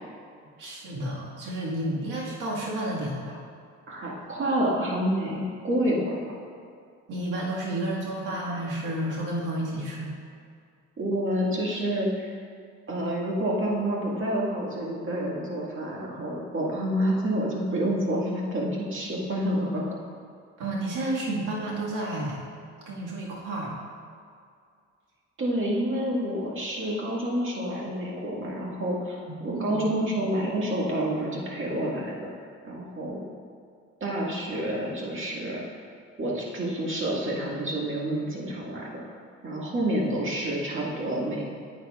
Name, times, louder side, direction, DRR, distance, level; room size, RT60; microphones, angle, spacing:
voice 1, 0.6-3.4 7.1-10.2 20.6-22.4 22.9-23.7 29.4-29.8, right 1 dB, 85° right, -4 dB, 1.9 m, -31 dB
voice 2, 3.9-6.4 11.0-12.3 12.9-20.0 25.4-32.3 32.6-33.3 34.0-35.6 36.2-39.0 39.4-41.4, right 1 dB, 40° right, -4 dB, 1.9 m, -28 dB
9.7 x 8.6 x 2.4 m, 2.2 s
cardioid pair, 90°, 30 cm